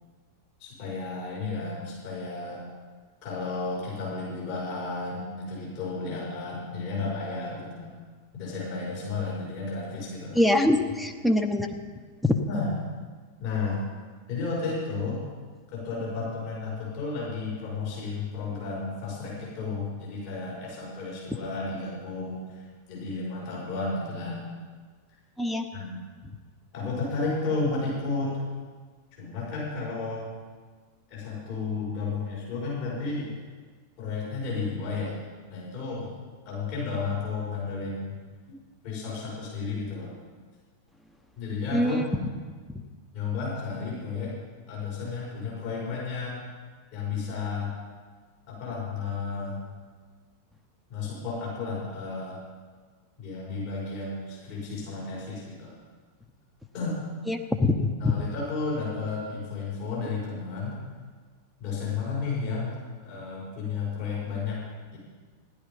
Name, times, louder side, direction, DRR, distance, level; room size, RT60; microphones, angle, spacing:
voice 1, 0.6-2.6 3.2-7.9 8.3-10.4 12.5-12.7 13.4-13.8 14.3-15.2 15.7-24.5 25.7-26.0 26.7-28.4 29.2-30.3 31.1-33.3 34.0-35.2 35.5-36.1 36.5-38.1 38.8-40.1 41.4-42.0 43.1-44.3 44.7-46.4 46.9-47.7 48.5-49.6 50.9-52.4 53.2-55.7 56.7-57.0 58.0-60.8 61.6-64.6, left 4 dB, 50° left, -6 dB, 5.4 m, -32 dB
voice 2, 10.3-11.8 12.2-12.4 25.4-25.7 41.7-42.1 57.3-58.1, left 1 dB, 5° left, 4 dB, 1.2 m, -24 dB
16.0 x 11.5 x 5.4 m, 1.5 s
figure-of-eight pair, 90°, 0 cm